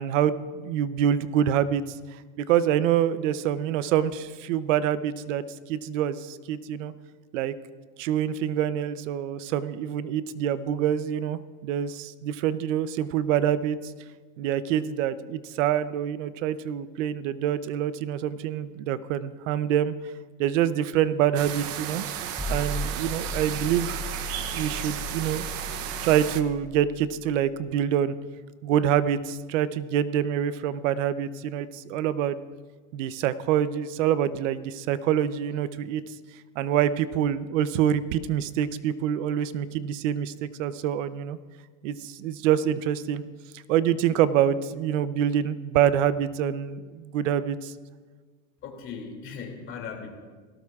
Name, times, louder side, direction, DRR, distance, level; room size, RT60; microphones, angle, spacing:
voice 1, 0.0-1.8 2.4-6.9 7.3-7.5 8.0-13.9 14.4-19.9 20.4-22.1 22.5-24.0 24.5-25.5 26.0-28.2 28.6-32.4 32.9-36.0 36.6-41.4 41.8-43.2 43.7-47.7, right 10 dB, 80° right, 15 dB, 0.7 m, -26 dB
sound 1, 21.3-26.4, right 10 dB, 40° right, 0.7 m, -34 dB
sound 2, 22.4-27.4, left 1 dB, ahead, 0.5 m, -36 dB
voice 2, 48.6-50.1, left 6 dB, 35° left, 1 dB, 2.5 m, -38 dB
18.0 x 17.0 x 2.4 m, 1.4 s
supercardioid pair, 155°, 37 cm